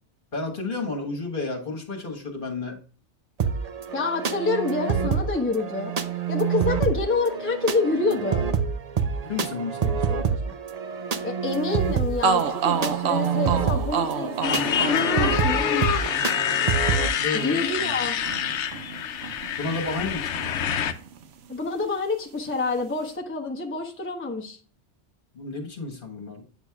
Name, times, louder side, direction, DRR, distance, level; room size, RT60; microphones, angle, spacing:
voice 1, 0.3-2.8 9.3-10.5 17.2-17.6 19.6-20.6 25.3-26.4, left 3 dB, 45° left, 1 dB, 1.5 m, -32 dB
sound 1, 3.4-17.1, right 6 dB, 45° right, 0.6 m, -27 dB
voice 2, 3.9-5.9 6.3-8.5 11.2-16.0 17.4-18.2 21.5-24.6, left 3 dB, 10° left, 0 dB, 0.9 m, -27 dB
sound 2, 11.8-11.9 12.2-20.1 20.3-21.5, right 6 dB, 70° right, 0.9 m, -30 dB
Motorcycle, 14.4-20.9, left 8 dB, 80° left, 1.0 m, -26 dB
8.0 x 6.2 x 2.3 m, 0.40 s
omnidirectional pair, 1.2 m